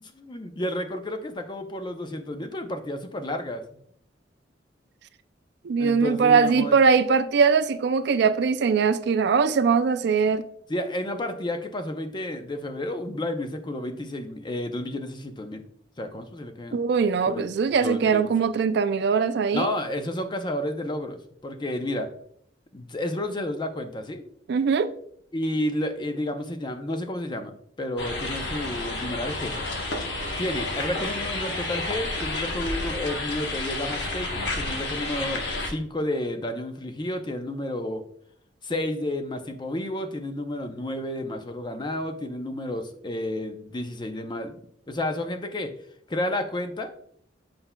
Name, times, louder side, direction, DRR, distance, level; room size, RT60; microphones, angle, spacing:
voice 1, 0.0-3.6 5.8-6.8 10.7-15.6 16.0-16.8 17.3-17.5 17.8-18.3 19.5-22.1 22.7-24.2 25.3-29.6 30.4-38.0 38.6-44.6 44.9-45.7 46.1-46.9, left 1 dB, 25° left, 0.5 m, -31 dB
voice 2, 5.6-10.4 16.7-19.7 24.5-24.9, right 5 dB, 65° right, 0.4 m, -21 dB
sound 1, 28.0-35.7, left 2 dB, 65° left, 1.1 m, -30 dB
7.8 x 5.6 x 2.2 m
head